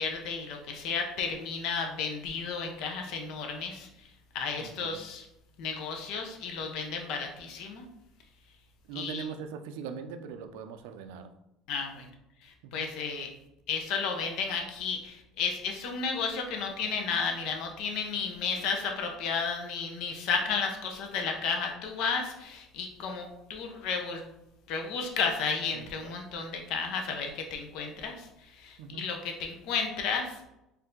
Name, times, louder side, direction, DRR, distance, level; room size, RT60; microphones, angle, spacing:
voice 1, 0.0-3.9 4.3-5.2 5.6-7.9 8.9-9.2 11.7-12.1 12.4-13.3 13.7-24.3 24.7-30.4, left 5 dB, 70° left, 3 dB, 0.8 m, -33 dB
voice 2, 4.6-5.0 8.9-11.3 12.6-12.9 25.7-26.1 28.8-29.1, right 6 dB, 85° right, 8 dB, 0.4 m, -41 dB
4.5 x 2.7 x 3.7 m, 0.87 s
supercardioid pair, 105°, 0 cm